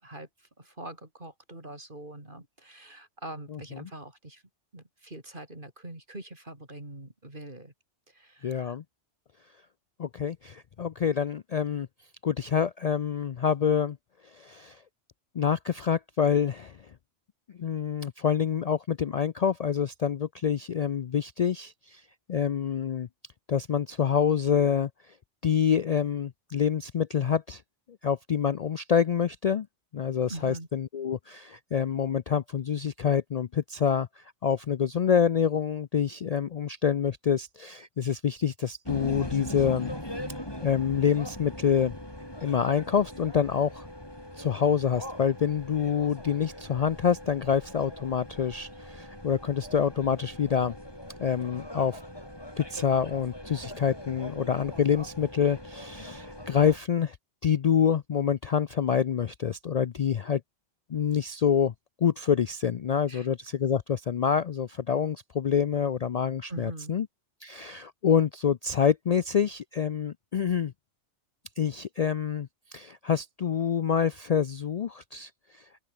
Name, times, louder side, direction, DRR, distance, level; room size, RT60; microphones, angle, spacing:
voice 1, 0.0-4.4 4.7-7.7 8.1-8.8 30.3-30.7 63.1-63.3 66.5-66.9, right 1 dB, 45° right, 5.6 m, -43 dB
voice 2, 3.5-3.9 8.4-8.8 10.0-11.9 12.2-14.0 14.3-14.8 15.3-16.8 17.6-22.0 22.3-23.1 23.5-24.9 25.4-27.6 28.0-29.7 29.9-39.9 40.6-41.9 42.4-43.9 44.4-50.8 51.2-52.0 52.6-57.2 57.4-60.4 60.9-61.7 62.0-67.1 67.4-70.7 71.6-75.6, left 7 dB, 65° left, 0.3 m, -27 dB
sound 1, 38.8-56.8, left 1 dB, 20° left, 6.7 m, -41 dB
open air
omnidirectional pair, 1.2 m